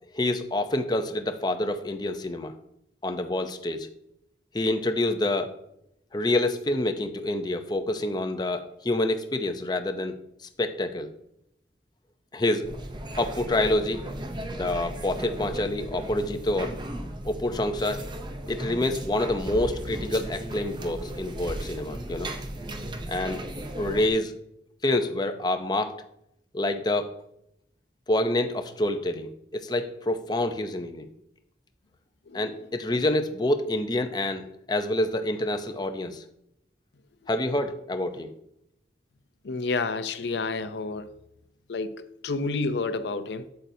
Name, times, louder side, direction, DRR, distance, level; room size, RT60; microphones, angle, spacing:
voice 1, 0.1-2.5 3.0-3.9 4.5-5.5 6.1-11.1 12.3-12.7 13.2-14.0 14.5-16.8 17.2-18.1 18.5-22.3 23.1-23.4 23.8-24.3 24.8-26.0 26.5-27.1 28.1-31.1 32.3-36.2 37.3-38.3, left 1 dB, 25° left, 0.6 m, -27 dB
sound 1, 12.6-24.1, right 1 dB, 25° right, 0.6 m, -36 dB
voice 2, 39.4-41.1 41.7-43.4, left 3 dB, 80° left, 0.5 m, -29 dB
8.3 x 7.7 x 2.7 m
head